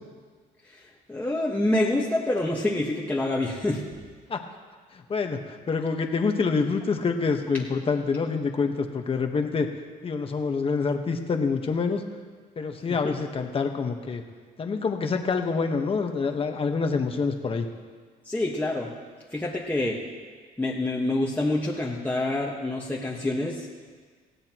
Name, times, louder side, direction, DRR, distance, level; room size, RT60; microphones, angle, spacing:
voice 1, 0.6-3.8 13.0-13.1 18.2-18.9 19.3-20.0 20.6-23.7, left 1 dB, 10° left, -4 dB, 1.5 m, -27 dB
voice 2, 4.9-9.7 10.0-12.0 12.6-14.2 14.6-17.6, left 4 dB, 35° left, 5 dB, 1.4 m, -26 dB
19.5 x 15.5 x 3.1 m, 1.5 s
cardioid pair, 110°, 17 cm